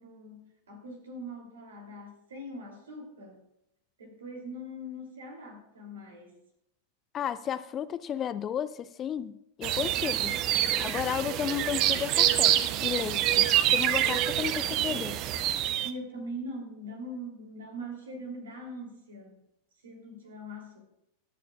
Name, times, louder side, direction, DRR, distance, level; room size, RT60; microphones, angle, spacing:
voice 1, 0.0-3.4 4.0-6.4 15.8-19.4 19.8-20.8, equal, 65° right, 2 dB, 2.8 m, -42 dB
voice 2, 7.1-9.3 9.6-10.3 10.8-15.2, left 9 dB, 25° left, 15 dB, 0.4 m, -33 dB
sound 1, 9.6-15.9, right 12 dB, 40° right, 0.5 m, -26 dB
21.5 x 8.4 x 2.4 m, 0.82 s
figure-of-eight pair, 90°, 0 cm